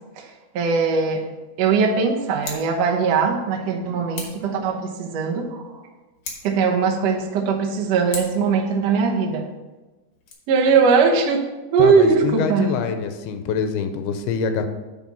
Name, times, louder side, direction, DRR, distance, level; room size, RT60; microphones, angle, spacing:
voice 1, 0.5-1.2 1.6-5.7 6.4-9.5 10.5-11.4 11.7-12.7, right 5 dB, 80° right, 0 dB, 1.4 m, -20 dB
Scissors, 2.3-2.7 4.1-4.5 6.1-6.6 8.1-8.5 10.1-10.3, left 4 dB, 50° left, 2.0 m, -35 dB
voice 2, 11.8-14.7, left 6 dB, 85° left, 7 dB, 2.6 m, -25 dB
9.9 x 4.3 x 5.8 m, 1.2 s
omnidirectional pair, 4.6 m